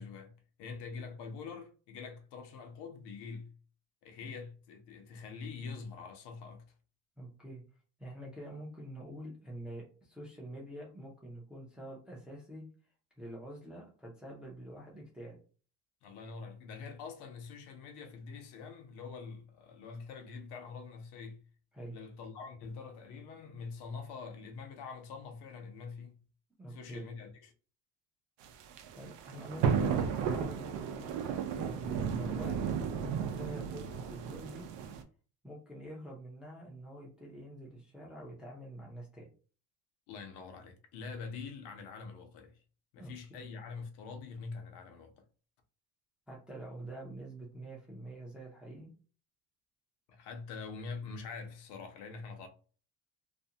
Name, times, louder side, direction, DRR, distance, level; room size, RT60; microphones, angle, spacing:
voice 1, 0.0-3.5 4.0-6.6 16.0-21.4 21.9-26.2 26.7-27.5 40.1-42.6 42.9-45.1 50.1-52.5, left 5 dB, 75° left, 0.7 m, -45 dB
voice 2, 7.2-7.6 8.0-12.6 13.2-15.4 21.7-22.0 26.6-27.1 29.0-32.9 33.2-34.7 35.4-39.3 43.0-43.1 46.3-48.9, right 1 dB, ahead, 0.4 m, -46 dB
sound 1, 28.4-35.0, right 7 dB, 85° right, 0.6 m, -34 dB
2.5 x 2.1 x 2.7 m
cardioid pair, 165°, 41 cm